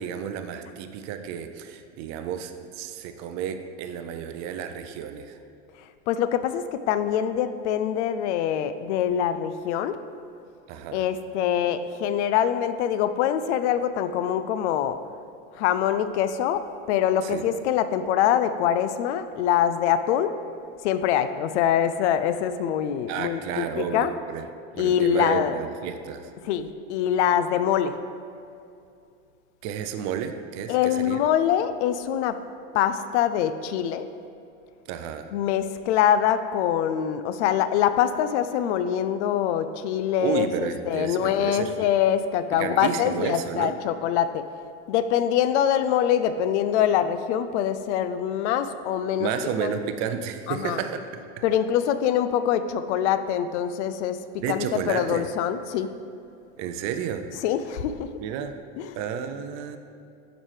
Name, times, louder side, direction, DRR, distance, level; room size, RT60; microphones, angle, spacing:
voice 1, 0.0-5.4 10.7-11.0 17.2-17.4 23.1-24.5 24.7-26.3 29.6-31.2 34.9-35.3 40.2-41.9 42.5-43.8 49.2-51.4 54.4-55.3 56.6-57.3 58.2-58.6 59.0-59.8, right 8 dB, 50° right, 8 dB, 0.5 m, -31 dB
voice 2, 6.1-10.0 10.9-15.0 15.6-20.4 20.8-24.1 24.8-25.6 26.4-28.0 30.7-32.4 32.7-34.1 35.3-44.5 44.9-49.8 50.5-50.8 51.4-55.9 57.3-58.1 58.8-59.0, left 9 dB, 75° left, 12 dB, 0.5 m, -24 dB
7.2 x 5.1 x 3.3 m, 2.5 s
supercardioid pair, 110°, 35 cm